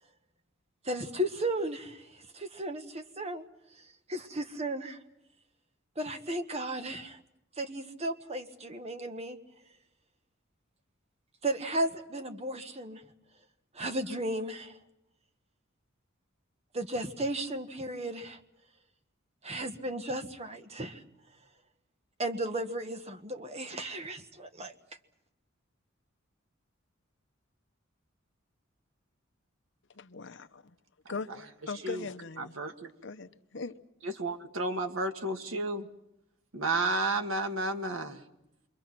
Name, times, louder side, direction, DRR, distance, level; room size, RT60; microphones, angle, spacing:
voice 1, 0.8-3.4 3.8-5.0 6.0-7.2 7.6-9.4 11.4-13.0 13.7-14.8 16.7-18.4 19.4-21.0 22.2-24.7, right 1 dB, 30° right, 1.4 m, -35 dB
voice 2, 30.0-30.8 31.1-31.4 31.7-32.6 33.0-33.7, left 4 dB, 65° left, 0.9 m, -40 dB
voice 3, 32.4-32.9 34.0-35.9 36.5-38.2, right 2 dB, 85° right, 1.7 m, -32 dB
28.0 x 24.0 x 6.0 m
head